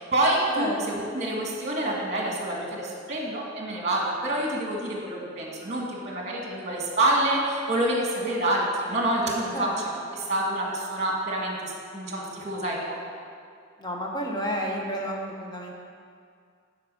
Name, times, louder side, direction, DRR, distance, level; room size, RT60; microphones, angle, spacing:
voice 1, 0.0-9.7 10.1-13.0, right 1 dB, 35° right, -1 dB, 1.6 m, -27 dB
voice 2, 13.8-15.7, equal, 20° left, -1 dB, 1.0 m, -31 dB
10.5 x 4.8 x 5.3 m, 2.2 s
head